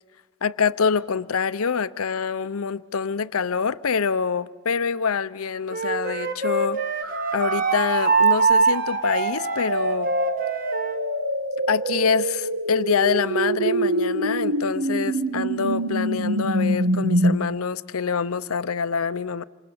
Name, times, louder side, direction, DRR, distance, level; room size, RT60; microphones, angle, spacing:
voice 1, 0.4-6.8 7.1-10.1 11.7-19.4, left 5 dB, 90° left, 0.7 m, -25 dB
Wind instrument woodwind instrument, 5.7-11.0, right 4 dB, 40° right, 1.7 m, -23 dB
sound 1, 7.0-17.4, right 1 dB, 65° right, 1.3 m, -26 dB
28.5 x 25.5 x 7.0 m
head